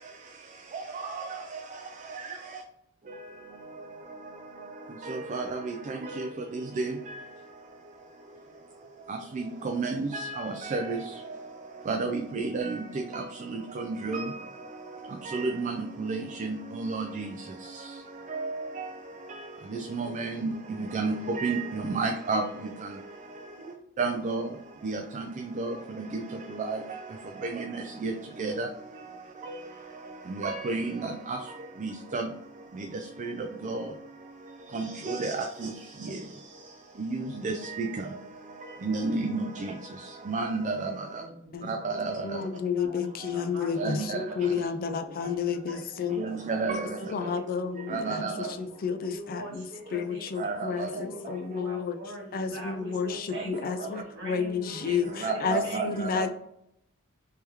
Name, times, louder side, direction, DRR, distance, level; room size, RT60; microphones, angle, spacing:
voice 1, 0.7-1.4 5.0-7.2 9.1-11.1 11.9-14.5 15.2-17.3 18.3-18.9 19.3-19.4 19.7-20.5 20.8-22.4 24.0-24.5 24.8-26.2 26.5-26.8 27.4-28.1 28.4-28.7 29.5-29.6 30.3-31.4 31.8-32.3 33.2-33.9 34.7-35.7 36.0-36.2 37.0-37.9 38.8-39.7 40.3-40.9 41.7-42.2 43.8-44.2 46.2-47.0 47.9-48.5 50.4-50.5 50.9-51.0 55.2-56.2, right 3 dB, 35° right, 0.4 m, -31 dB
voice 2, 23.6-23.9 41.1-41.8 42.7-48.6 49.0-56.3, right 1 dB, 60° right, 1.4 m, -44 dB
voice 3, 42.2-46.2 47.1-48.3 48.6-49.7 49.9-52.0 52.3-56.3, left 6 dB, 40° left, 0.4 m, -31 dB
3.4 x 3.3 x 3.0 m
head